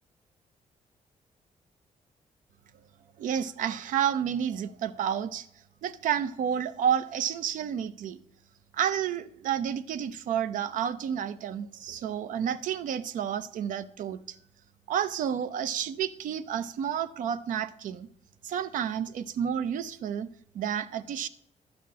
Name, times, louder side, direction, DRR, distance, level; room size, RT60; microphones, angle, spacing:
voice 1, 3.2-5.5 5.8-8.2 8.7-14.4 14.9-18.1 18.4-20.3 20.5-21.3, right 9 dB, 80° right, 0.6 m, -30 dB
12.0 x 4.3 x 7.3 m
wide cardioid pair, 170°, 13 cm